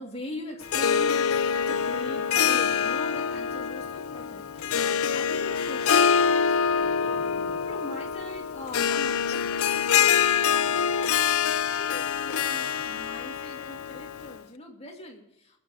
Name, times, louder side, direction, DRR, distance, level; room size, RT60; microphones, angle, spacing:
voice 1, 0.0-7.2 7.7-15.6, left 1 dB, 30° left, 1 dB, 2.6 m, -42 dB
Harp, 0.6-14.4, left 7 dB, 90° left, 0.6 m, -25 dB
sound 1, 6.6-11.3, left 1 dB, 45° right, 3.9 m, -52 dB
20.5 x 7.5 x 7.2 m, 0.84 s
head